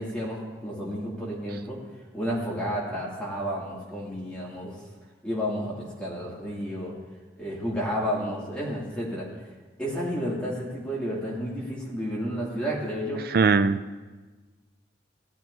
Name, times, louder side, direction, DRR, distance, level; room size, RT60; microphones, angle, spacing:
voice 1, 0.0-1.8 2.1-4.8 5.2-6.9 7.4-9.3 9.8-13.2, equal, 5° left, -7 dB, 2.5 m, -31 dB
voice 2, 13.3-14.0, right 4 dB, 55° right, 10 dB, 0.4 m, -21 dB
17.5 x 12.0 x 2.8 m, 1.3 s
head